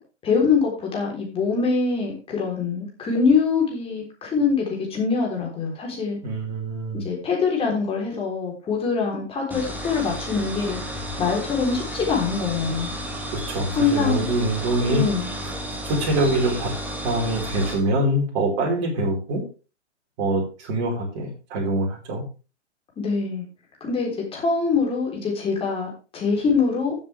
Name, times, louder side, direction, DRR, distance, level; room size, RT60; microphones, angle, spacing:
voice 1, 0.2-6.2 6.9-10.8 11.2-12.9 13.7-14.3 14.9-15.3 23.0-23.5 23.8-27.0, left 5 dB, 15° left, -1 dB, 3.8 m, -24 dB
voice 2, 6.2-7.0 13.3-15.0 15.8-16.7 17.0-19.4 20.2-22.2, right 1 dB, 35° right, -1 dB, 4.9 m, -24 dB
sound 1, 9.5-17.8, equal, 5° right, 1.8 m, -32 dB
14.5 x 7.6 x 3.4 m, 0.33 s
figure-of-eight pair, 115°, 35 cm